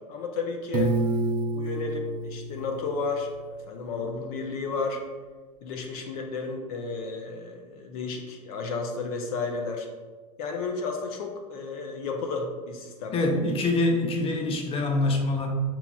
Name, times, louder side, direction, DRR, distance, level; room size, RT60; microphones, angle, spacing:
voice 1, 0.1-1.0 1.5-5.0 5.6-9.9 10.4-13.3, left 4 dB, 65° left, 2 dB, 0.5 m, -32 dB
Piano, 0.7-3.7, right 2 dB, 40° right, 0.7 m, -29 dB
voice 2, 13.1-15.5, left 2 dB, 30° left, 3 dB, 0.7 m, -25 dB
5.7 x 2.9 x 2.3 m, 1.4 s
hypercardioid pair, 95°, 20 cm